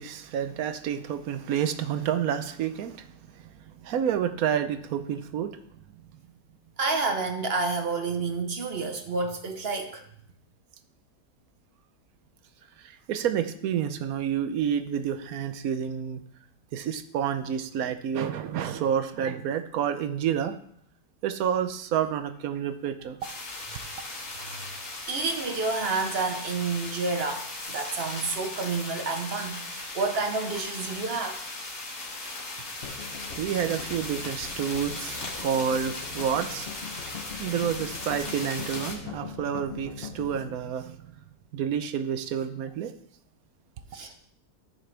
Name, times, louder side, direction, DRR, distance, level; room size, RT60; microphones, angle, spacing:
voice 1, 0.0-5.6 6.0-6.1 12.8-16.2 16.7-20.6 21.2-23.2 32.9-41.1 41.5-42.9, right 8 dB, 65° right, 10 dB, 1.1 m, -29 dB
voice 2, 6.8-10.1 25.1-31.4 43.9-44.1, right 4 dB, 45° right, 6 dB, 1.0 m, -29 dB
sound 1, 23.2-38.9, left 2 dB, 80° left, 3.4 m, -38 dB
sound 2, 32.8-40.5, left 6 dB, 45° left, 0.9 m, -41 dB
13.5 x 6.5 x 3.4 m, 0.67 s
omnidirectional pair, 1.7 m